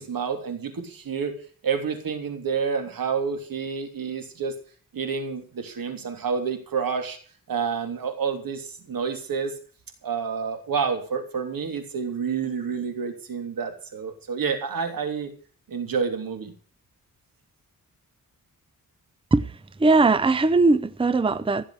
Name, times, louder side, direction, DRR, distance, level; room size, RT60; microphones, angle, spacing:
voice 1, 0.0-1.3 1.6-4.5 4.9-7.2 7.5-9.5 10.0-15.3 15.7-16.5, right 6 dB, 80° right, 3.2 m, -29 dB
voice 2, 19.3-21.6, right 3 dB, 15° right, 0.7 m, -20 dB
15.5 x 7.6 x 8.2 m
wide cardioid pair, 105°, 34 cm